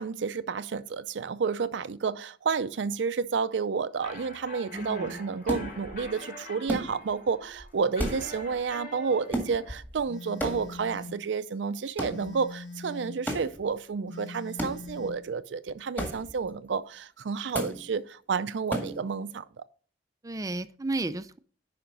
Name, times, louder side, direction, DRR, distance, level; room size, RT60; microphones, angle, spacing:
voice 1, 0.0-19.6, right 5 dB, 80° right, 0.5 m, -31 dB
sound 1, 4.0-9.8, left 1 dB, 50° left, 3.5 m, -45 dB
voice 2, 4.7-5.2 20.2-21.4, right 2 dB, 20° right, 0.4 m, -33 dB
sound 2, 5.5-6.1 6.7-7.3 7.6-7.7 7.9-8.7 9.3-10.0 10.4-11.0 12.0-12.3 13.3-13.6 14.6-15.1 16.0-16.5 17.5-17.9 18.7-19.1, right 1 dB, 10° left, 1.8 m, -34 dB
Telephone, 10.1-11.2 12.1-13.2 14.1-15.2, left 2 dB, 75° left, 1.2 m, -42 dB
10.5 x 5.1 x 3.9 m
head